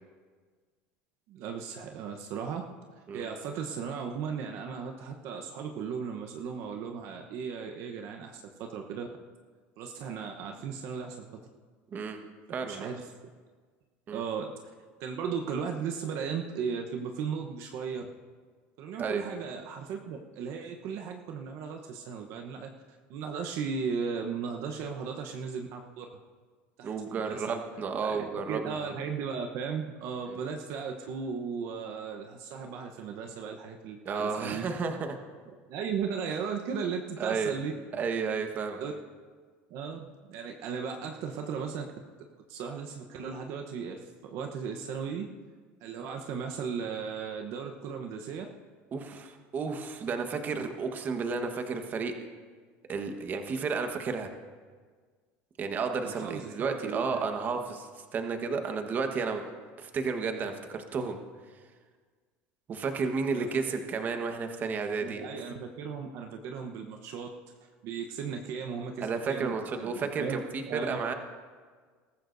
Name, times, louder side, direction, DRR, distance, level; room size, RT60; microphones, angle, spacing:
voice 1, 1.3-2.7 3.1-9.1 9.8-11.3 12.6-13.1 14.1-14.5 15.0-18.0 18.8-22.7 23.1-26.1 26.8-27.6 28.0-34.7 35.7-37.7 38.8-38.9 39.7-41.9 42.5-45.3 45.8-48.5 56.0-57.2 63.3-63.5 65.0-67.4 67.8-69.9 70.2-70.4 70.7-71.0, right 6 dB, 60° right, 3 dB, 1.0 m, -36 dB
voice 2, 12.5-12.9 14.1-14.2 19.0-19.2 26.8-29.0 30.3-30.4 34.0-35.2 37.2-37.6 38.0-38.8 48.9-52.1 52.9-54.3 55.6-59.4 59.8-61.2 62.7-65.2 69.0-71.1, right 5 dB, 35° right, 5 dB, 1.4 m, -32 dB
22.0 x 13.5 x 2.7 m, 1.5 s
supercardioid pair, 125°, 5 cm